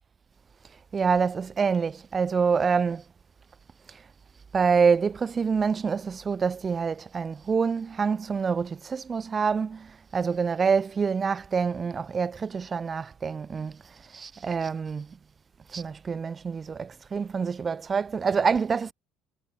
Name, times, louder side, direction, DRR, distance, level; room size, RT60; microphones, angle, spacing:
voice 1, 0.9-3.0 3.9-4.0 4.5-13.8 14.1-15.1 15.7-18.9, right 5 dB, 30° right, 0.6 m, -26 dB
figure-of-eight pair, 60°, 0 cm